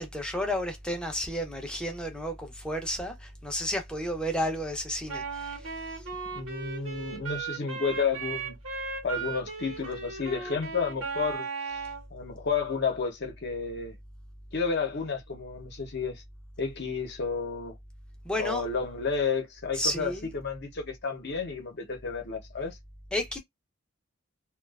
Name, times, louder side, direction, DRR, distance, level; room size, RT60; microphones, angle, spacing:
voice 1, 0.0-6.0 18.2-18.6 19.7-20.3 23.1-23.4, equal, 5° left, 0.5 m, -32 dB
Wind instrument woodwind instrument, 5.1-12.0, right 5 dB, 75° right, 1.0 m, -36 dB
voice 2, 6.3-8.6 9.0-11.8 12.1-14.0 14.5-16.2 16.6-17.7 18.4-22.8, left 5 dB, 55° left, 0.7 m, -31 dB
2.4 x 2.3 x 2.3 m
head